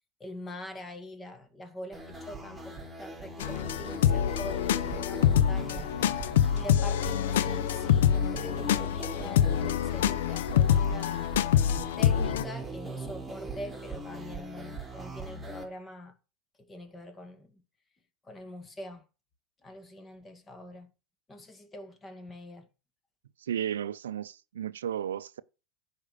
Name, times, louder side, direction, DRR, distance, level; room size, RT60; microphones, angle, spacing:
voice 1, 0.2-11.3 12.0-16.2 16.6-17.6 18.2-19.1 19.6-20.9 21.3-22.7, left 1 dB, 20° left, 2.1 m, -44 dB
sound 1, 1.9-15.6, right 1 dB, 10° right, 3.9 m, -40 dB
sound 2, 3.4-12.4, left 10 dB, 80° left, 0.6 m, -26 dB
voice 2, 23.4-25.4, right 9 dB, 90° right, 0.5 m, -34 dB
10.0 x 5.1 x 6.7 m
hypercardioid pair, 105°, 0 cm